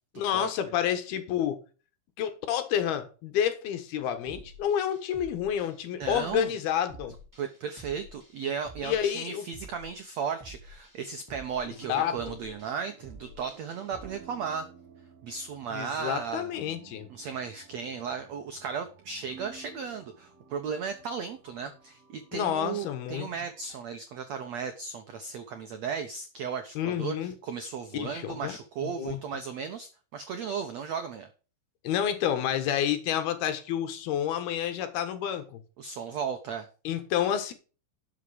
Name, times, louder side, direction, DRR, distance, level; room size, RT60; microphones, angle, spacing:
voice 1, 0.2-1.6 2.2-7.1 8.8-9.4 11.9-12.2 15.7-17.1 22.3-23.3 26.8-27.3 27.9-29.2 31.8-35.6 36.8-37.5, left 10 dB, 75° left, 3.3 m, -29 dB
sound 1, 4.3-14.1, right 2 dB, 5° right, 2.6 m, -50 dB
voice 2, 5.9-6.5 7.4-14.6 15.2-16.5 17.1-31.3 35.8-36.7, right 6 dB, 80° right, 1.5 m, -35 dB
sound 2, 11.7-23.8, right 7 dB, 45° right, 3.2 m, -53 dB
12.0 x 6.6 x 5.0 m
omnidirectional pair, 4.6 m